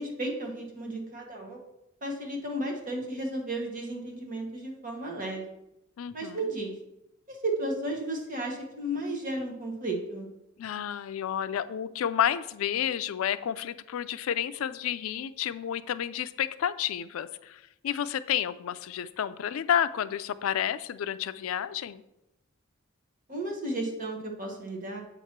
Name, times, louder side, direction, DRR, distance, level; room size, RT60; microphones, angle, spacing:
voice 1, 0.0-1.6 2.0-5.5 6.1-6.7 7.3-10.3 23.3-25.0, right 1 dB, 40° right, 0 dB, 1.2 m, -33 dB
voice 2, 6.0-6.5 10.6-22.0, left 9 dB, 75° left, 14 dB, 0.3 m, -30 dB
7.9 x 3.0 x 5.8 m, 0.89 s
head